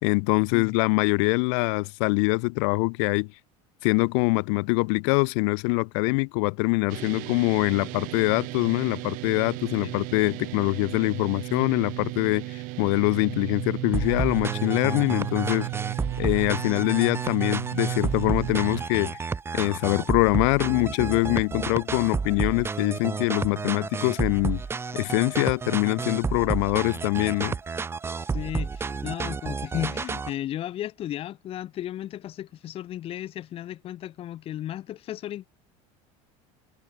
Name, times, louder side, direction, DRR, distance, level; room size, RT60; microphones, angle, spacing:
voice 1, 0.0-3.3 3.8-15.7 16.2-19.2 19.5-24.6 24.9-27.6, left 36 dB, 70° left, 2.6 m, -24 dB
Dist Chr G, 6.9-18.8, right 24 dB, 55° right, 1.7 m, -34 dB
sound 1, 13.9-30.3, right 5 dB, 15° right, 1.4 m, -31 dB
voice 2, 28.3-35.5, left 12 dB, 35° left, 1.9 m, -34 dB
cardioid pair, 150°, 16 cm